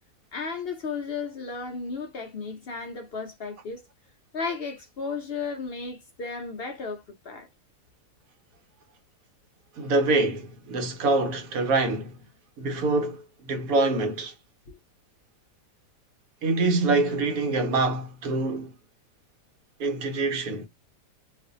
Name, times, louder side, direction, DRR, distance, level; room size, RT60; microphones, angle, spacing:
voice 1, 0.3-3.9 4.3-7.5 14.7-14.8, left 4 dB, 65° left, 0.5 m, -34 dB
voice 2, 9.8-12.2 12.6-14.3 16.4-18.7 19.8-20.7, right 3 dB, 70° right, 1.2 m, -25 dB
2.6 x 2.4 x 2.5 m
omnidirectional pair, 1.6 m